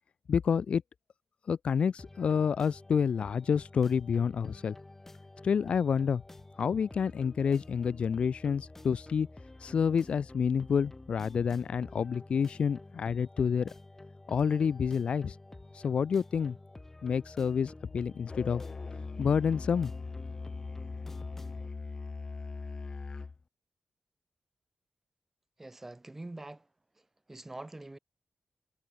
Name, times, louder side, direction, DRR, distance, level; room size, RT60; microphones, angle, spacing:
voice 1, 0.3-0.8 1.5-4.7 5.4-6.2 6.6-9.3 9.6-13.7 14.3-15.4 15.7-16.6 17.0-18.6 19.2-19.9, left 6 dB, 65° left, 0.7 m, -28 dB
sound 1, 2.0-21.7, left 2 dB, 15° left, 4.5 m, -50 dB
Musical instrument, 18.3-23.4, left 4 dB, 35° left, 1.7 m, -40 dB
voice 2, 25.6-26.7 27.0-28.0, right 2 dB, 15° right, 3.4 m, -45 dB
wide cardioid pair, 165°, 2 cm